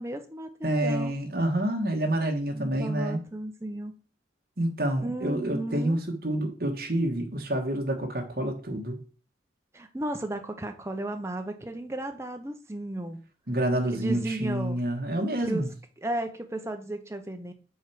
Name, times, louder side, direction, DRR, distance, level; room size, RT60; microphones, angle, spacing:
voice 1, 0.0-1.1 2.5-3.9 5.0-6.0 9.7-13.2 13.9-14.8 15.4-15.6 16.0-17.5, right 1 dB, 15° right, 0.6 m, -34 dB
voice 2, 0.6-3.2 4.6-9.0 13.5-15.7, right 1 dB, 55° right, 1.4 m, -28 dB
4.8 x 4.5 x 5.7 m
head